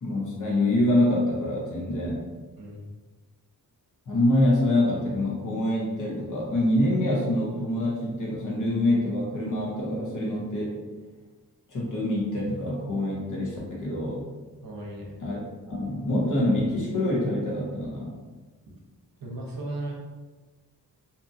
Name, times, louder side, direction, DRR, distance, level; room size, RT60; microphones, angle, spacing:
voice 1, 0.0-2.2 4.1-10.7 11.7-14.2 15.2-15.4 15.7-18.2, left 1 dB, 50° left, -4 dB, 0.9 m, -25 dB
voice 2, 14.6-15.2 19.2-19.9, right 2 dB, 60° right, -2 dB, 0.8 m, -36 dB
2.7 x 2.4 x 2.6 m, 1.3 s
wide cardioid pair, 95°, 38 cm